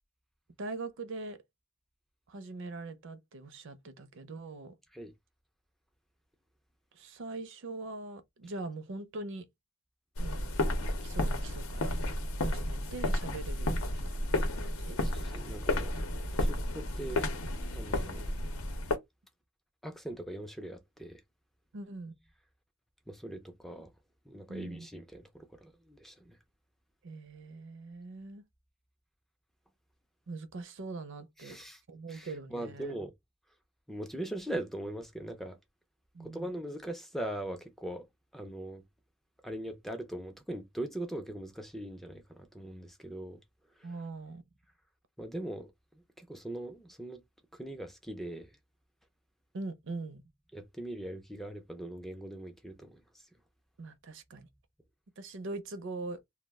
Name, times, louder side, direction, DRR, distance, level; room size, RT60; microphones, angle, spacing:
voice 1, 0.6-1.4 2.3-4.7 6.9-9.5 10.2-10.5 11.0-11.9 12.4-14.2 14.6-15.0 21.7-22.1 24.5-24.9 27.0-28.4 30.3-31.6 31.9-32.9 36.1-36.5 43.8-44.4 49.5-50.2 53.8-54.5 55.2-56.2, right 3 dB, 60° right, 0.5 m, -42 dB
sound 1, 10.2-19.0, left 1 dB, 70° left, 0.7 m, -32 dB
voice 2, 15.0-15.9 16.4-17.2 17.7-18.3 19.8-21.2 23.1-23.9 24.3-26.4 31.4-31.8 32.1-33.1 33.9-35.6 36.2-38.1 38.3-38.8 39.4-43.4 43.8-43.9 45.2-45.7 46.2-47.2 47.5-48.5 50.5-53.2, right 1 dB, ahead, 0.3 m, -41 dB
2.3 x 2.0 x 3.4 m
head